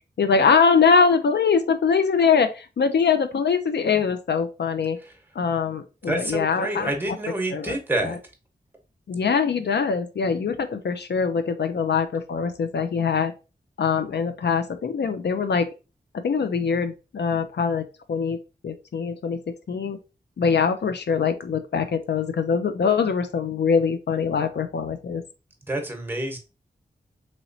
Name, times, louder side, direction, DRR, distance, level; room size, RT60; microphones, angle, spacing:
voice 1, 0.2-5.0 5.4-6.9 7.5-8.2 9.1-13.3 13.8-15.7 16.1-18.4 18.6-19.4 19.7-20.0 20.4-25.2, left 5 dB, 70° left, 9 dB, 0.5 m, -23 dB
voice 2, 6.1-8.2 25.6-26.4, right 1 dB, 10° right, 4 dB, 0.9 m, -28 dB
3.0 x 3.0 x 2.6 m, 0.30 s
cardioid pair, 55°, 18 cm